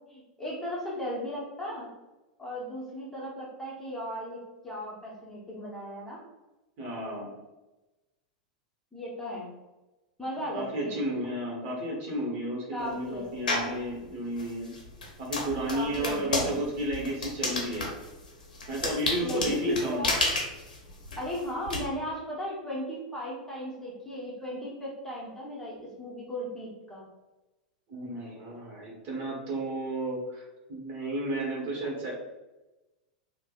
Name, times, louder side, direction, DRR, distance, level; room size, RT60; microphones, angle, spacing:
voice 1, 0.0-1.9 2.4-6.2 8.9-9.5 10.2-11.0 12.7-13.3 15.7-16.6 19.2-20.2 21.2-27.0, equal, 10° left, -6 dB, 0.9 m, -36 dB
voice 2, 6.8-7.3 10.3-14.7 15.2-17.9 18.7-20.0 27.9-32.1, right 1 dB, 45° right, -3 dB, 1.1 m, -33 dB
sound 1, 13.5-13.8 14.4-21.8, left 2 dB, 85° left, 0.7 m, -31 dB
3.2 x 2.1 x 2.3 m, 1.1 s
hypercardioid pair, 100°, 4 cm